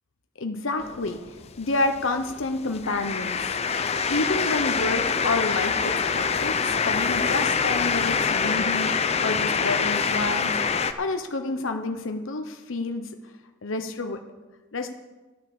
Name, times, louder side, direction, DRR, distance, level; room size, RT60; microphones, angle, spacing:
voice 1, 0.4-3.4 4.1-8.9 9.2-13.2 13.6-14.2 14.7-14.9, left 2 dB, 80° left, 5 dB, 0.9 m, -29 dB
sound 1, 0.8-10.9, left 5 dB, 30° left, 0.6 m, -25 dB
12.5 x 9.4 x 6.9 m, 1.2 s
head